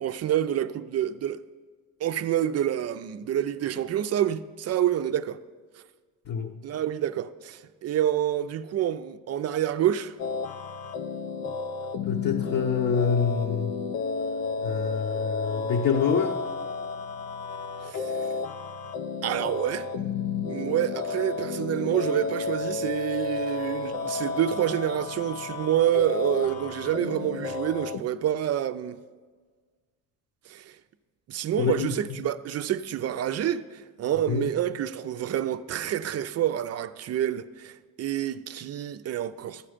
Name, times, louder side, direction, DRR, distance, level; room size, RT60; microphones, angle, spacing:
voice 1, 0.0-1.4 2.0-5.4 6.6-10.1 17.8-18.3 19.2-19.9 20.5-29.0 30.5-30.8 31.3-39.7, right 11 dB, 45° right, 0.5 m, -28 dB
sound 1, 10.2-28.0, left 4 dB, 85° left, 0.8 m, -32 dB
voice 2, 12.0-13.7 14.6-16.4 31.6-31.9 34.3-34.5, left 6 dB, 50° left, 0.9 m, -26 dB
13.0 x 8.7 x 5.1 m
cardioid pair, 130°, 35 cm